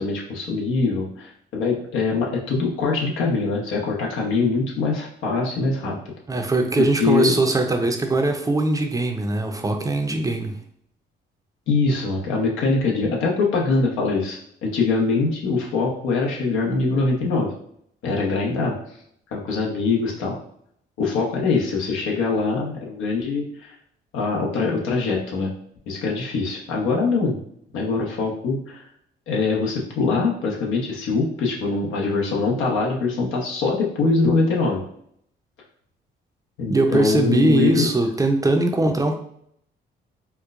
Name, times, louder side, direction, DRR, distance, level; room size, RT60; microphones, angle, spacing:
voice 1, 0.0-6.0 6.8-7.4 11.7-17.5 18.0-18.8 19.3-20.4 21.0-23.7 24.1-25.5 25.9-27.4 27.7-28.8 29.3-34.8 36.6-37.9, left 4 dB, 85° left, -2 dB, 0.9 m, -23 dB
voice 2, 6.3-10.6 36.7-39.2, right 2 dB, 15° right, 4 dB, 0.5 m, -21 dB
4.4 x 2.1 x 2.4 m, 0.69 s
cardioid pair, 90°, 20 cm